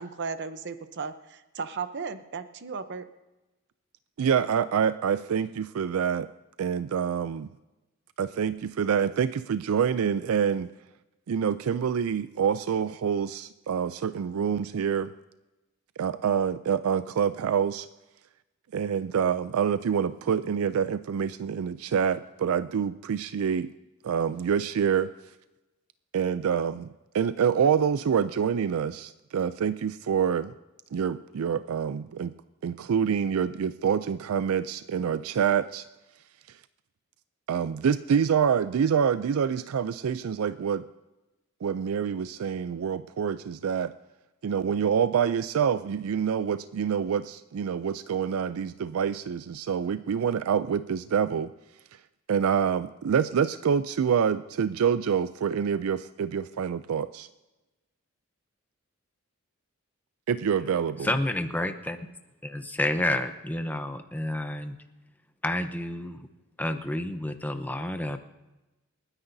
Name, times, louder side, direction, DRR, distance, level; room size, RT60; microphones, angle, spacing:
voice 1, 0.0-3.1, right 5 dB, 55° right, 11 dB, 0.7 m, -35 dB
voice 2, 4.2-6.3 6.6-7.5 8.2-10.7 11.3-15.1 16.0-17.9 18.7-23.7 24.0-25.1 26.1-26.9 27.1-30.5 30.9-32.3 32.6-35.8 37.5-40.8 41.6-43.9 44.4-51.5 52.3-57.3 60.3-61.1, right 7 dB, 80° right, 14 dB, 0.4 m, -26 dB
voice 3, 61.0-62.1 62.4-64.7 65.4-66.3 66.6-68.2, left 1 dB, 10° left, 8 dB, 0.8 m, -30 dB
28.5 x 9.8 x 2.7 m, 1.0 s
head